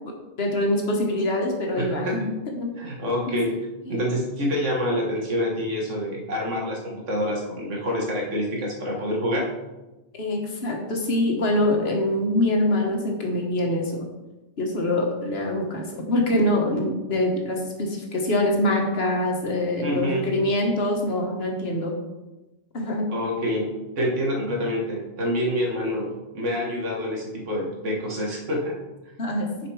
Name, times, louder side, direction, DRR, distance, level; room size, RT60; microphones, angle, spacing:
voice 1, 0.4-2.3 2.6-2.7 3.3-3.4 3.9-4.0 10.1-14.1 14.6-21.9 22.7-23.0 29.2-29.5, left 1 dB, 55° left, 1 dB, 1.5 m, -24 dB
voice 2, 1.8-2.3 2.8-3.6 3.9-9.5 19.8-20.3 23.1-28.8, equal, 80° right, -1 dB, 1.9 m, -27 dB
6.7 x 5.1 x 4.7 m, 1.1 s
omnidirectional pair, 1.2 m